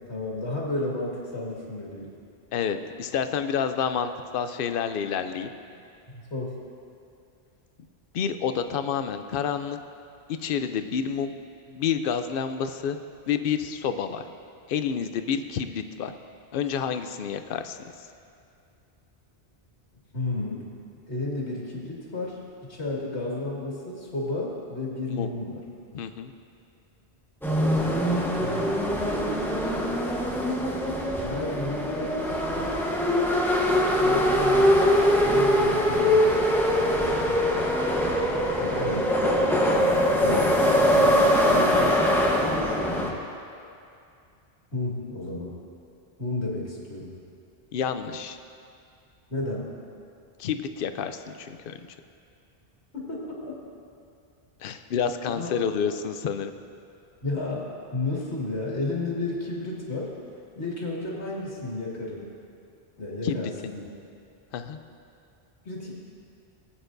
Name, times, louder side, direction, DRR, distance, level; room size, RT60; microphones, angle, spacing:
voice 1, 0.0-2.1 6.1-6.5 20.1-20.7 21.1-22.4 22.7-25.6 28.3-29.4 31.2-32.7 34.0-36.3 36.6-37.4 38.6-39.2 39.7-39.9 40.2-42.0 44.7-45.5 46.2-47.1 49.3-49.7 52.9-53.6 55.3-55.5 57.2-57.7 57.9-60.1 60.6-62.3 63.0-63.7 65.6-65.9, left 2 dB, 80° left, -4 dB, 2.2 m, -32 dB
voice 2, 2.5-5.5 8.1-9.8 10.4-11.3 11.7-13.0 13.3-14.2 14.7-16.1 16.5-17.8 25.1-25.3 25.9-26.3 47.7-48.4 50.4-51.8 54.6-56.5 63.2-63.3 64.5-64.8, left 7 dB, 60° left, 9 dB, 0.7 m, -29 dB
sound 1, 27.4-43.1, equal, ahead, 0.9 m, -22 dB
19.0 x 8.9 x 2.6 m, 2.5 s
omnidirectional pair, 1.1 m